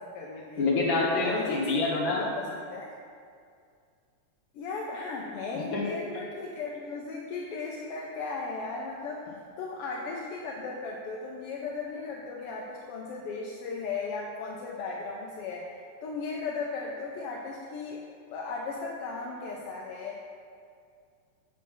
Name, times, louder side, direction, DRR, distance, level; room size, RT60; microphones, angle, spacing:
voice 1, 0.0-0.7 1.2-2.9 4.5-9.3 9.6-15.7 16.0-18.0 18.3-20.2, left 4 dB, 70° left, -2 dB, 1.4 m, -36 dB
voice 2, 0.6-2.2 5.5-6.1, left 3 dB, 50° left, -3 dB, 1.9 m, -27 dB
7.6 x 6.9 x 5.4 m, 2.3 s
omnidirectional pair, 3.3 m